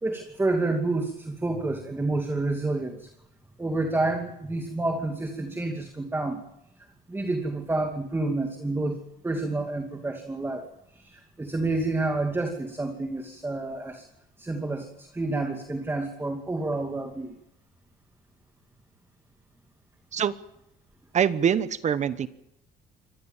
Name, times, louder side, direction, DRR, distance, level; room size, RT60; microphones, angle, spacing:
voice 1, 0.0-3.1 3.6-6.4 7.1-14.1 14.4-17.4, right 2 dB, 15° right, 4 dB, 2.5 m, -29 dB
voice 2, 21.1-22.3, right 8 dB, 45° right, 15 dB, 1.1 m, -24 dB
24.0 x 18.5 x 7.4 m, 0.82 s
cardioid pair, 110°, 17 cm